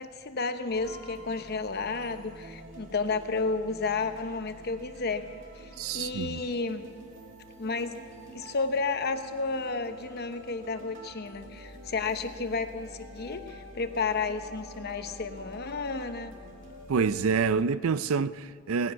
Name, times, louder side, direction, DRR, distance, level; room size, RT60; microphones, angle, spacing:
voice 1, 0.0-5.3 5.5-6.8 7.6-8.0 8.3-16.3, left 4 dB, 50° left, 0.9 m, -32 dB
sound 1, 0.7-17.6, equal, 65° right, 2.4 m, -48 dB
voice 2, 5.8-6.4 16.9-18.9, right 5 dB, 85° right, 0.4 m, -27 dB
18.5 x 10.0 x 7.7 m
head